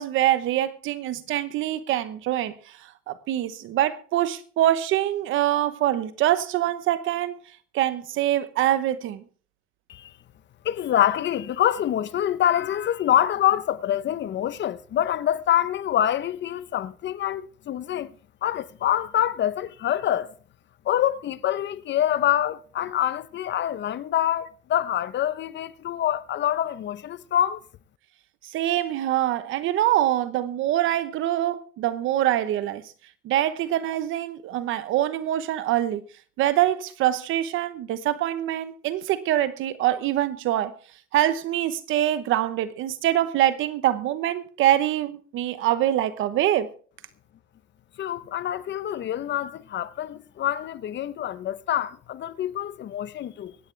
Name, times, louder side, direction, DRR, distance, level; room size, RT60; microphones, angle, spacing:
voice 1, 0.0-2.5 3.1-7.4 7.7-9.2 28.5-32.8 33.2-36.0 36.4-40.7 41.1-46.7, right 13 dB, 90° right, 1.0 m, -24 dB
voice 2, 10.6-18.1 18.4-20.3 20.8-27.6 48.0-53.6, left 11 dB, 65° left, 0.8 m, -26 dB
24.0 x 9.2 x 3.3 m
cardioid pair, 90°, 20 cm